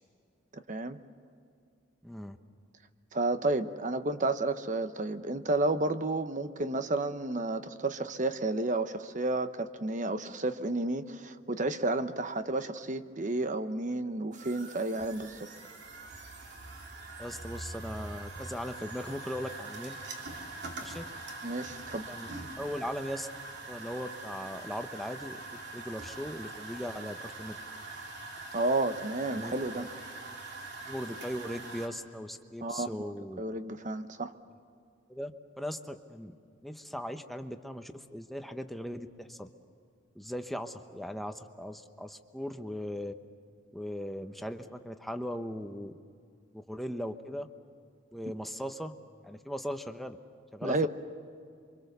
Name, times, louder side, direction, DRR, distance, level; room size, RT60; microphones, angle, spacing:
voice 1, 0.5-1.0 3.1-15.5 21.4-22.1 28.5-29.9 32.6-33.1 33.4-34.3 50.6-50.9, right 2 dB, 40° right, 10 dB, 1.0 m, -31 dB
voice 2, 2.0-2.4 17.2-20.0 20.8-21.0 22.1-22.3 22.6-23.3 23.7-25.4 25.7-27.6 29.3-29.9 30.3-30.4 30.9-33.4 35.1-35.3 35.6-36.3 36.6-39.5 40.1-43.1 43.7-46.0 46.5-47.5 48.1-48.9 49.2-50.2 50.5-50.9, equal, ahead, 7 dB, 1.0 m, -39 dB
sound 1, 14.3-31.9, right 2 dB, 55° right, 3.1 m, -43 dB
28.0 x 25.0 x 6.8 m, 2.3 s
head